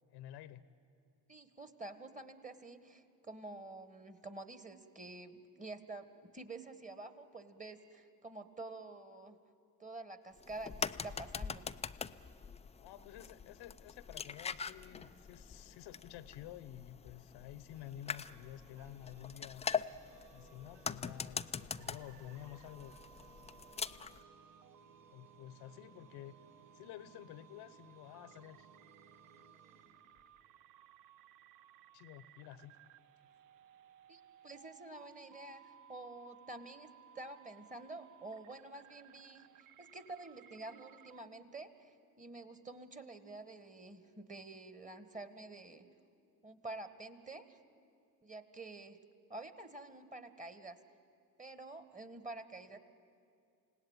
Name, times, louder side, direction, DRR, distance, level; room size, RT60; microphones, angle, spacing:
voice 1, 0.1-0.6 12.8-19.7 20.3-23.0 25.1-26.3 26.7-28.7 31.9-32.8, left 12 dB, 55° left, 15 dB, 1.1 m, -51 dB
voice 2, 1.3-9.3 9.8-11.7 34.1-45.9 46.4-47.6 48.2-49.0 49.3-50.8 51.4-52.8, right 2 dB, 15° right, 10 dB, 1.7 m, -49 dB
sound 1, 10.4-24.2, left 6 dB, 15° left, 0.5 m, -43 dB
sound 2, 17.7-30.7, right 5 dB, 60° right, 3.3 m, -64 dB
sound 3, 21.8-41.2, right 9 dB, 40° right, 0.8 m, -61 dB
28.5 x 17.5 x 9.2 m, 2.4 s
hypercardioid pair, 65°, 48 cm